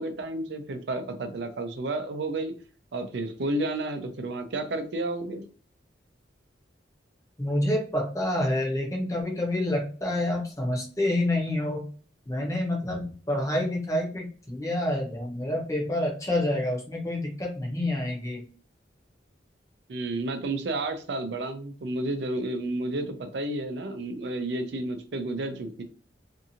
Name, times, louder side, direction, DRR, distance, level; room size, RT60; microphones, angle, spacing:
voice 1, 0.0-2.5 2.9-5.4 19.9-25.8, right 2 dB, 70° right, 7 dB, 0.5 m, -31 dB
voice 2, 7.4-11.9 12.3-18.4, left 1 dB, 15° left, 0 dB, 0.7 m, -28 dB
2.6 x 2.4 x 2.7 m, 0.39 s
head